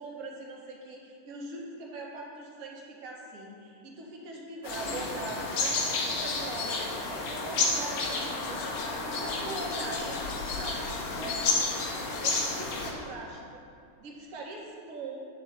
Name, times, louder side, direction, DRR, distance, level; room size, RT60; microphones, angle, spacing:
voice 1, 0.0-10.8 11.1-11.6 12.2-13.7 14.0-15.3, right 2 dB, 45° right, -2 dB, 1.4 m, -41 dB
sound 1, 4.6-12.9, left 3 dB, 50° left, 1.2 m, -31 dB
9.6 x 3.4 x 5.0 m, 2.4 s
figure-of-eight pair, 90°, 0 cm